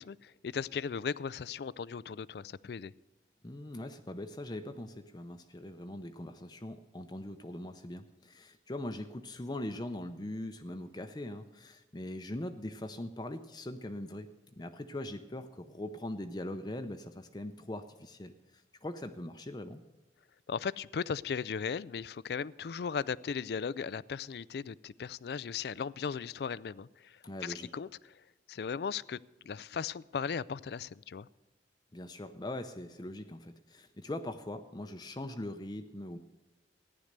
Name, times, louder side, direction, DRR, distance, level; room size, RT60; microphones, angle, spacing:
voice 1, 0.0-2.9 20.5-27.9 28.5-29.2 29.5-31.3, left 6 dB, 60° left, 21 dB, 0.4 m, -37 dB
voice 2, 3.4-14.3 14.6-19.8 27.2-27.7 31.9-36.2, left 1 dB, 25° left, 8 dB, 0.6 m, -41 dB
15.0 x 10.5 x 6.6 m, 1.1 s
head